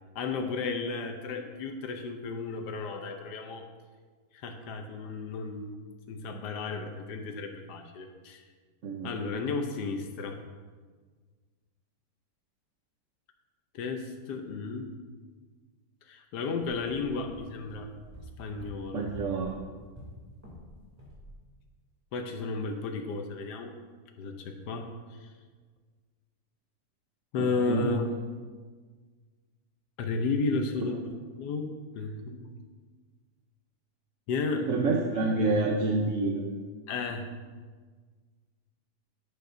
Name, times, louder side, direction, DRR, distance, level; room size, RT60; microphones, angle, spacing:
voice 1, 0.1-3.6 4.3-5.8 6.1-8.4 9.0-10.4 13.7-14.9 16.1-17.9 18.4-19.1 22.1-23.7 24.2-25.3 27.3-28.1 30.0-31.0 31.4-32.5 34.3-34.7 36.9-37.3, left 4 dB, 80° left, 4 dB, 1.4 m, -33 dB
sound 1, 16.7-20.7 21.0-21.3, equal, 10° right, 2.7 m, -48 dB
voice 2, 18.9-19.6 27.4-27.9 34.7-36.4, right 3 dB, 55° right, -1 dB, 1.1 m, -28 dB
11.0 x 9.3 x 2.7 m, 1.5 s
omnidirectional pair, 1.8 m